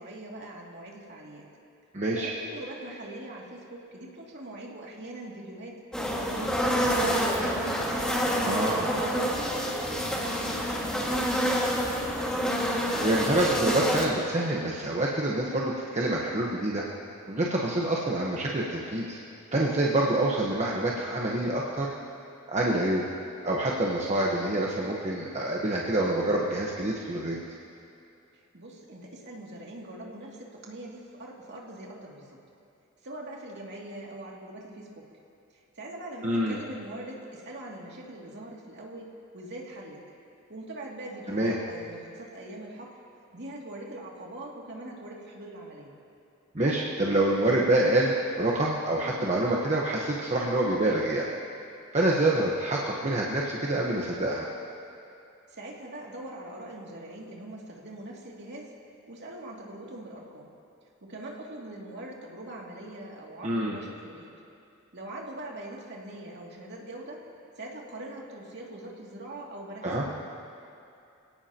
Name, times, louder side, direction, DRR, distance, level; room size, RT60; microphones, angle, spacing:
voice 1, 0.0-1.5 2.0-5.8 6.2-8.3 8.9-11.9 28.3-32.4 33.0-35.1 35.8-40.0 40.5-43.0 43.3-45.9 55.5-58.7 59.1-60.5 61.0-64.4 64.9-67.2 67.6-70.3, right 1 dB, 55° right, -2 dB, 2.6 m, -42 dB
voice 2, 1.9-2.3 8.4-9.0 13.0-16.8 17.3-19.2 19.5-21.9 22.5-23.0 23.4-27.4 36.2-36.6 41.3-41.5 46.5-51.3 51.9-54.5 63.4-63.8 69.8-70.0, right 1 dB, 35° right, -4 dB, 1.2 m, -26 dB
sound 1, 5.9-14.1, equal, 5° left, 2.0 m, -27 dB
26.0 x 17.5 x 3.0 m, 2.7 s
head